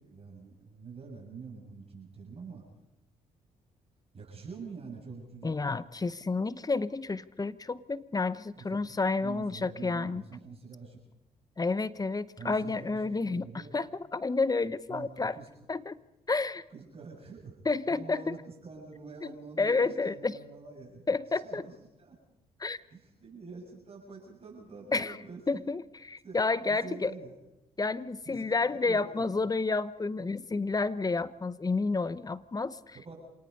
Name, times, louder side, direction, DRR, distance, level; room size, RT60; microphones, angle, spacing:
voice 1, 0.0-2.6 4.1-5.5 8.7-8.8 9.2-11.0 12.4-13.8 14.9-15.5 16.7-21.0 21.4-22.2 22.9-25.6 26.2-26.4 26.7-27.3 28.2-29.3 32.9-33.1, right 4 dB, 40° right, -2 dB, 6.9 m, -46 dB
voice 2, 5.4-10.2 11.6-15.4 15.7-16.0 16.3-16.6 17.6-18.4 19.6-20.4 21.1-21.6 22.6-22.8 24.9-25.2 25.5-27.1 27.8-33.0, left 3 dB, 25° left, 17 dB, 0.8 m, -30 dB
27.0 x 18.5 x 5.4 m, 0.98 s
supercardioid pair, 60°, 16 cm